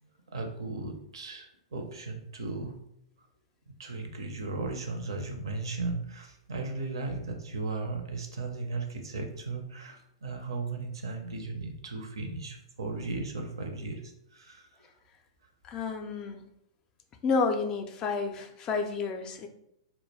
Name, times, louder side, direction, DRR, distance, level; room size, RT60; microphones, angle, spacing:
voice 1, 0.0-2.8 3.2-3.3 3.7-14.9, right 3 dB, 75° right, 4 dB, 0.5 m, -36 dB
voice 2, 15.6-16.4 17.2-19.5, left 4 dB, 30° left, 6 dB, 0.3 m, -30 dB
2.2 x 2.1 x 3.2 m, 0.77 s
hypercardioid pair, 110°, 3 cm